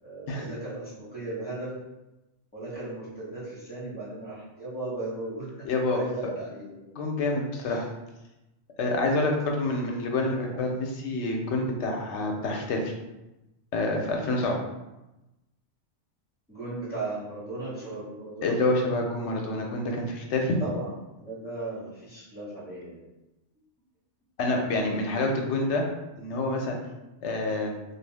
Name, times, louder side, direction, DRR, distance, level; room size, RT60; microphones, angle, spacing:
voice 1, 0.0-1.8 2.5-7.0 7.6-7.9 10.4-10.7 16.5-18.6 20.6-23.0 25.2-25.5, right 2 dB, 10° left, -9 dB, 1.2 m, -37 dB
voice 2, 5.7-6.0 7.0-7.8 8.8-12.8 13.7-14.6 18.4-20.6 24.4-25.9 26.2-26.8 27.2-27.8, left 2 dB, 75° left, 1 dB, 0.9 m, -27 dB
2.5 x 2.3 x 3.3 m, 0.99 s
omnidirectional pair, 1.2 m